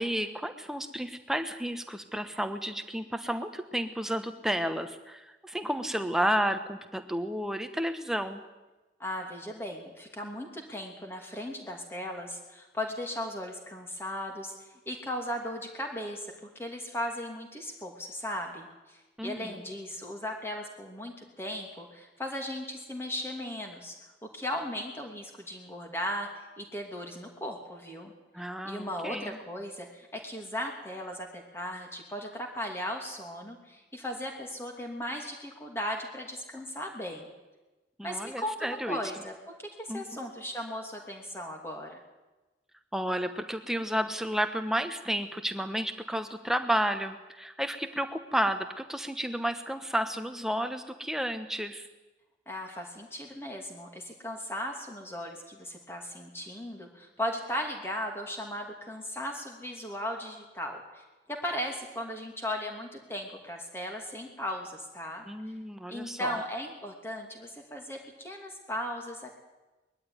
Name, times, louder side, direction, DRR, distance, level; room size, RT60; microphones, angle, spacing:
voice 1, 0.0-8.4 19.2-19.5 28.3-29.4 38.0-39.0 39.9-40.0 42.9-51.9 65.3-66.4, equal, 5° right, 7 dB, 1.1 m, -31 dB
voice 2, 9.0-16.3 16.6-23.9 24.2-26.3 26.6-28.1 28.4-37.3 38.0-42.0 52.5-65.2 65.9-69.4, left 1 dB, 15° left, 2 dB, 2.8 m, -37 dB
21.0 x 13.5 x 9.7 m, 1.1 s
head